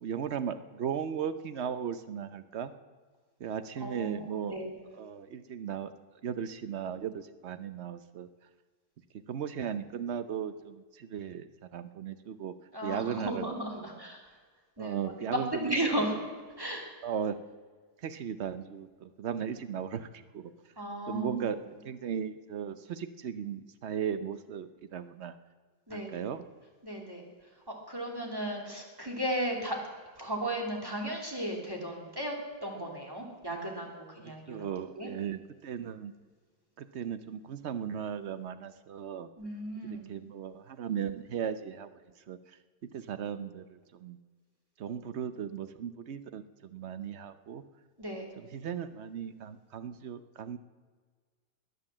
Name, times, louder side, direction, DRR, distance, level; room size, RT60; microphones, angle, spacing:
voice 1, 0.0-2.7 3.4-4.6 4.9-5.9 6.2-8.3 9.3-12.5 12.8-13.5 13.8-14.0 14.8-15.8 17.0-17.4 18.0-20.5 21.1-25.4 25.9-26.4 34.2-36.1 36.8-39.3 39.8-41.9 42.3-42.4 42.9-44.2 44.8-47.6 48.4-50.6, right 8 dB, 65° right, 11 dB, 0.6 m, -37 dB
voice 2, 3.8-4.7 12.7-14.2 14.8-15.1 15.5-16.1 16.6-16.8 20.8-21.4 25.9-26.1 26.8-27.2 27.9-29.8 30.2-32.3 32.6-34.6 35.0-35.1 39.4-40.1 48.0-48.2, right 1 dB, 10° right, 0 dB, 2.7 m, -35 dB
20.0 x 9.8 x 7.3 m, 1.5 s
omnidirectional pair, 2.0 m